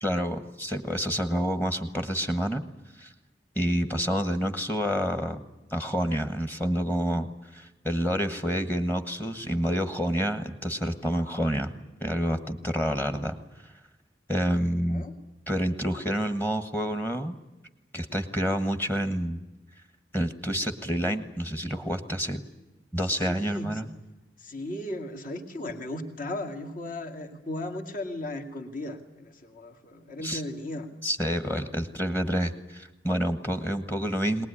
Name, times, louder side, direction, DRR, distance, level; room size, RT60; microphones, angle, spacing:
voice 1, 0.0-2.6 3.0-3.1 3.5-5.4 5.7-11.7 12.0-13.4 14.3-15.0 15.5-17.3 17.9-19.4 20.1-22.4 22.9-23.9 30.2-30.4 31.0-34.5, equal, 10° left, 9 dB, 1.4 m, -28 dB
voice 2, 23.1-23.9 24.4-30.9, left 1 dB, 50° left, 4 dB, 2.4 m, -36 dB
22.0 x 20.0 x 9.9 m, 1.0 s
head